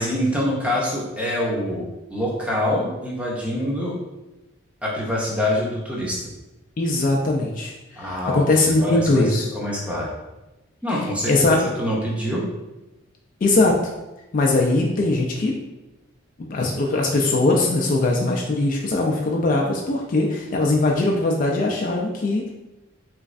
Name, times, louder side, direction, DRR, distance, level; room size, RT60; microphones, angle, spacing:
voice 1, 0.0-4.0 4.8-6.2 8.0-10.1 10.8-12.4, left 1 dB, 5° right, -4 dB, 0.6 m, -25 dB
voice 2, 6.8-9.5 11.3-11.6 13.4-13.8 14.3-15.6 16.4-22.5, left 2 dB, 40° left, -1 dB, 0.3 m, -20 dB
3.4 x 3.1 x 2.5 m, 1.0 s
head